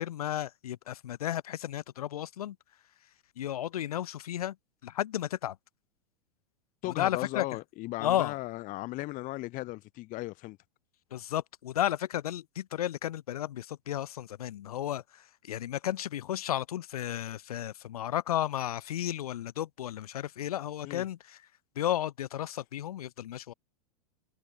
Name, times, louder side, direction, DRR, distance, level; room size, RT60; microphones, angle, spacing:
voice 1, 0.0-2.6 3.4-4.6 4.8-5.6 6.9-7.4 8.0-8.4 11.1-21.4 21.8-23.5, left 12 dB, 70° left, 3.5 m, -33 dB
voice 2, 6.8-10.6 20.8-21.1, left 20 dB, 40° left, 2.7 m, -36 dB
figure-of-eight pair, 95°, 20 cm